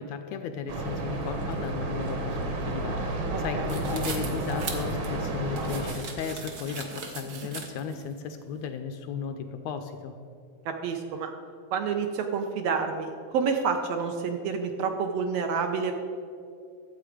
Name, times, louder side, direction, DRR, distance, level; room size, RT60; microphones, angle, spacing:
voice 1, 0.0-10.1, left 6 dB, 80° left, 7 dB, 1.6 m, -35 dB
sound 1, 0.7-5.9, right 2 dB, 50° right, 1.6 m, -31 dB
voice 2, 3.3-3.8 10.6-11.3 11.7-15.9, right 5 dB, 75° right, 5 dB, 1.6 m, -29 dB
sound 2, 3.7-8.0, right 4 dB, 90° right, 0.8 m, -39 dB
12.5 x 8.1 x 4.9 m, 2.4 s
omnidirectional pair, 3.3 m